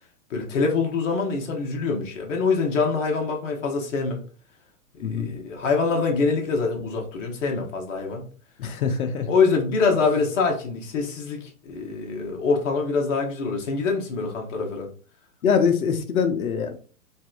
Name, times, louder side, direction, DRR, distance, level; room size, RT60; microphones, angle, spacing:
voice 1, 0.3-4.2 5.0-8.2 9.3-14.9, left 4 dB, 55° left, 1 dB, 1.2 m, -24 dB
voice 2, 5.0-5.3 8.6-9.3 15.4-16.8, left 6 dB, 70° left, 8 dB, 0.8 m, -23 dB
4.0 x 2.5 x 2.4 m, 0.40 s
hypercardioid pair, 125°, 44 cm